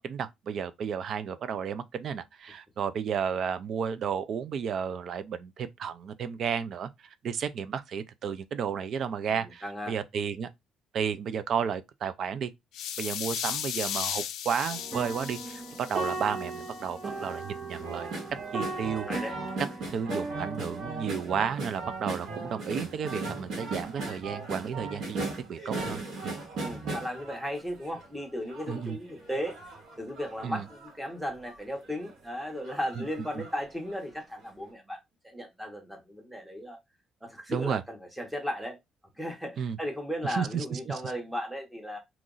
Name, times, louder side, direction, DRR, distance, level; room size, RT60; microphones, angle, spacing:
voice 1, 0.0-6.9 7.2-10.5 10.9-12.5 13.0-18.1 18.5-19.1 19.9-26.4 28.7-29.0 30.4-30.7 33.0-33.1 33.4-33.5 37.5-37.8 39.6-39.8 40.3-40.9, right 7 dB, 50° right, 0.4 m, -32 dB
voice 2, 9.3-9.9 19.1-19.3 26.6-29.6 30.0-36.8 37.2-38.8 39.2-42.0, equal, 5° right, 1.0 m, -36 dB
sound 1, 12.7-16.8, left 10 dB, 80° left, 0.4 m, -36 dB
sound 2, 14.7-21.3, right 3 dB, 30° right, 0.8 m, -37 dB
sound 3, 17.7-28.1 28.5-30.9 31.5-31.6 31.8-32.1 32.7-33.6 33.9-34.0, right 3 dB, 65° right, 1.7 m, -37 dB
2.9 x 2.5 x 3.8 m
cardioid pair, 150°, 0 cm